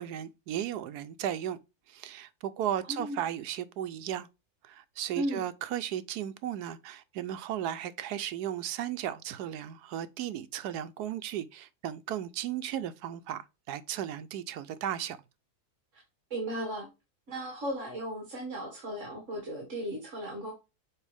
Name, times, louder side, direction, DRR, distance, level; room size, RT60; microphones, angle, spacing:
voice 1, 0.0-1.6 1.9-4.3 4.6-15.2, right 11 dB, 85° right, 1.2 m, -35 dB
voice 2, 2.8-3.2 5.2-5.5 15.9-16.0 16.3-16.9 17.3-20.5, right 1 dB, 50° right, 2.2 m, -36 dB
7.2 x 4.4 x 3.3 m
omnidirectional pair, 1.7 m